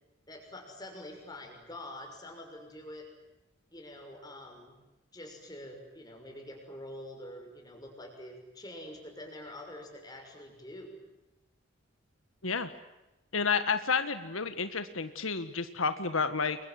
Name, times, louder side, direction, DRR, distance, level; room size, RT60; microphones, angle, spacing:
voice 1, 0.3-3.1 3.7-4.8 5.1-11.0, left 1 dB, 20° left, 3 dB, 6.2 m, -46 dB
voice 2, 13.3-16.6, left 5 dB, 85° left, 10 dB, 1.6 m, -30 dB
29.5 x 23.0 x 7.7 m, 1.0 s
head